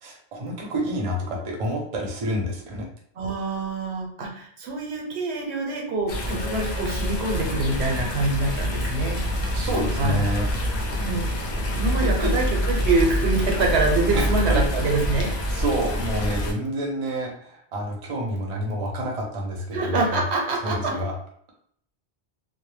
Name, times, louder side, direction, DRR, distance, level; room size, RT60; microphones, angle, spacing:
voice 1, 0.0-2.9 9.5-10.5 11.9-12.3 14.1-14.6 15.5-20.2 20.6-21.1, right 1 dB, 40° right, -1 dB, 0.5 m, -28 dB
voice 2, 3.2-9.2 9.8-10.2 11.0-11.3 11.7-15.3 19.7-21.0, right 3 dB, 80° right, 1 dB, 0.9 m, -25 dB
sound 1, 6.1-16.5, equal, 55° left, 0.5 m, -26 dB
2.1 x 2.1 x 3.1 m, 0.62 s
omnidirectional pair, 1.1 m